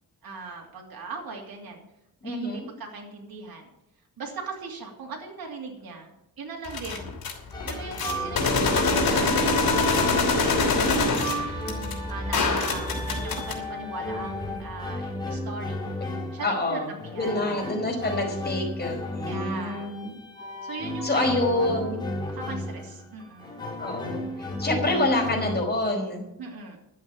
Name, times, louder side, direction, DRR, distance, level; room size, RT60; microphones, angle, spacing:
voice 1, 0.2-1.8 2.2-3.7 4.2-7.1 7.6-11.6 12.1-15.9 16.3-17.3 19.3-20.0 20.6-22.0 22.3-23.6 26.4-26.8, right 4 dB, 90° right, 0 dB, 2.8 m, -38 dB
voice 2, 2.2-2.7 16.4-20.1 21.0-22.0 23.8-26.2, left 2 dB, 25° left, 1 dB, 4.9 m, -27 dB
sound 1, 6.6-7.3 7.6-13.5, left 3 dB, 80° left, 3.1 m, -24 dB
sound 2, 7.5-25.6, left 1 dB, 10° left, 3.7 m, -33 dB
11.5 x 8.1 x 8.5 m, 0.86 s
wide cardioid pair, 105°, 35 cm